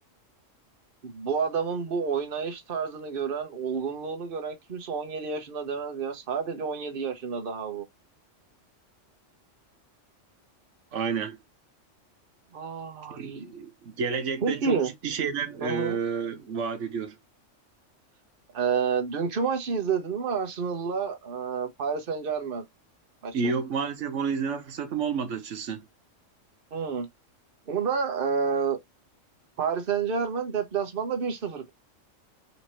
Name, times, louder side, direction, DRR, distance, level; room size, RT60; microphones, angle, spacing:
voice 1, 1.0-7.9 12.5-13.5 14.4-14.9 15.6-16.0 18.5-22.6 23.2-23.5 26.7-27.1 27.7-28.8 29.6-31.7, right 6 dB, 45° right, 1.2 m, -29 dB
voice 2, 10.9-11.4 13.2-17.2 23.3-25.9, right 5 dB, 70° right, 1.2 m, -30 dB
4.1 x 2.9 x 3.0 m
omnidirectional pair, 1.3 m